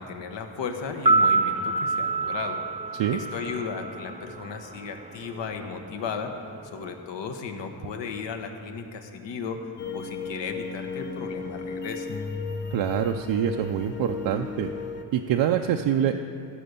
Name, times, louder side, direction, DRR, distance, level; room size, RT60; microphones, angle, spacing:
voice 1, 0.0-2.6 3.1-6.3 6.6-9.6 9.9-12.1, left 5 dB, 75° left, 5 dB, 1.1 m, -35 dB
sound 1, 0.9-5.1 5.3-5.4, right 3 dB, 15° right, 0.3 m, -26 dB
sound 2, 9.8-15.0, left 5 dB, 25° left, 0.7 m, -34 dB
voice 2, 12.7-14.7 15.1-16.1, right 10 dB, 80° right, 4 dB, 0.6 m, -25 dB
15.5 x 5.2 x 6.8 m, 2.5 s
cardioid pair, 95°, 44 cm